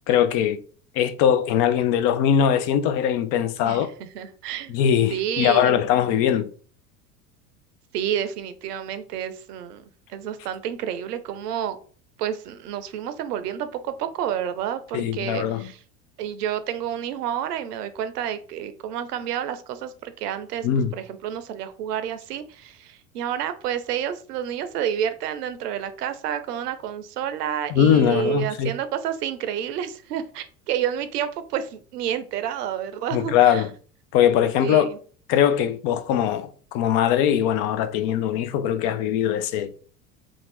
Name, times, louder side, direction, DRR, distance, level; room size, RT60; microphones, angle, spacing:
voice 1, 0.1-0.6 1.0-3.9 4.7-6.5 14.9-15.7 20.6-20.9 27.7-28.7 33.1-33.7 34.1-34.9 35.3-39.7, left 9 dB, 50° left, 0.5 m, -21 dB
voice 2, 3.6-4.7 5.1-5.8 7.9-11.8 12.2-15.8 16.2-20.7 20.9-33.6 34.6-35.0, right 9 dB, 80° right, 0.6 m, -29 dB
2.6 x 2.4 x 3.2 m
hypercardioid pair, 85°, 46 cm